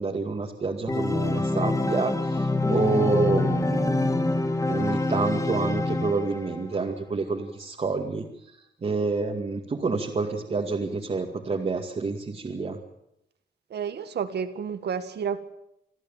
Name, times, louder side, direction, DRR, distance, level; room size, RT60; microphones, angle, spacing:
voice 1, 0.0-4.3 4.7-8.2 8.8-12.8, right 4 dB, 35° right, 2.3 m, -28 dB
Organ, 0.9-6.6, left 2 dB, 15° left, 1.7 m, -26 dB
voice 2, 13.7-15.4, right 7 dB, 70° right, 1.9 m, -30 dB
26.5 x 14.0 x 9.1 m
wide cardioid pair, 130°, 18 cm